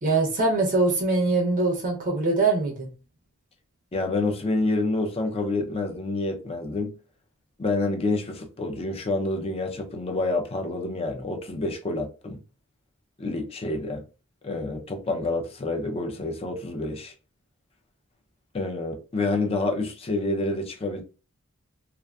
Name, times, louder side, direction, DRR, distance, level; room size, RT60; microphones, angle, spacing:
voice 1, 0.0-2.9, right 3 dB, 35° right, 0.5 m, -23 dB
voice 2, 3.9-7.0 7.6-12.4 13.2-14.0 14.4-17.1 18.5-21.0, left 2 dB, 25° left, 0.4 m, -28 dB
2.4 x 2.4 x 2.2 m
head